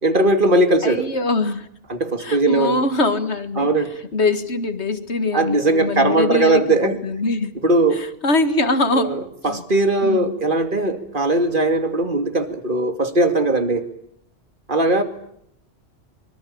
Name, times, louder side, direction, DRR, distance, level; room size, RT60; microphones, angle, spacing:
voice 1, 0.0-1.1 1.9-2.9 3.6-3.9 5.3-7.0 7.6-8.0 8.9-13.8 14.7-15.0, right 2 dB, 45° right, 8 dB, 2.8 m, -19 dB
voice 2, 0.8-1.7 2.2-3.7 4.1-7.6 7.9-9.6 10.0-10.3, left 2 dB, 65° left, 10 dB, 2.1 m, -23 dB
25.0 x 24.5 x 8.7 m, 0.72 s
omnidirectional pair, 1.2 m